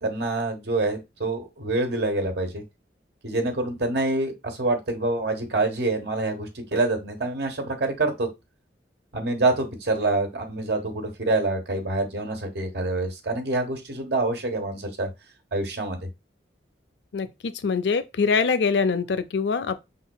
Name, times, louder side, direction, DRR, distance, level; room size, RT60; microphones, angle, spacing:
voice 1, 0.0-2.6 3.2-8.3 9.1-15.1 15.5-16.0, right 2 dB, 65° right, 1.3 m, -26 dB
voice 2, 17.1-19.8, left 5 dB, 75° left, 0.5 m, -24 dB
5.3 x 3.7 x 2.3 m
head